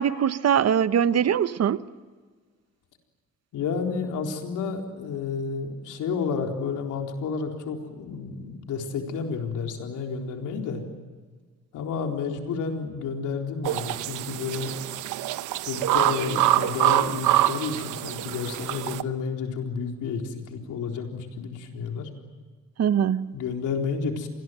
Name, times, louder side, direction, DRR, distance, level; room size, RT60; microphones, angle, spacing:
voice 1, 0.0-1.8 22.8-23.3, right 8 dB, 55° right, 14 dB, 1.0 m, -22 dB
voice 2, 3.5-10.8 11.7-14.7 15.7-22.1 23.3-24.3, left 5 dB, 85° left, 3 dB, 4.1 m, -31 dB
sound 1, 13.6-19.0, right 14 dB, 85° right, 0.9 m, -25 dB
27.0 x 20.5 x 9.3 m, 1.5 s
cardioid pair, 90°, 30 cm